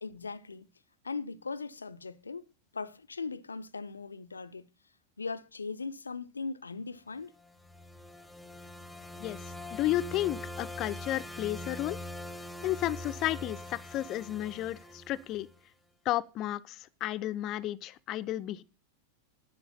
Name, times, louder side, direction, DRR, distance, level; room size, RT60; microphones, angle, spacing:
voice 1, 0.0-0.7 1.0-2.4 2.7-4.7 5.2-7.3, left 4 dB, 75° left, 0.6 m, -39 dB
sound 1, 7.4-15.6, left 1 dB, 5° left, 1.1 m, -43 dB
voice 2, 9.7-12.0 12.6-15.5 16.0-18.6, left 14 dB, 35° left, 0.6 m, -32 dB
11.0 x 8.3 x 5.6 m
figure-of-eight pair, 90°, 0 cm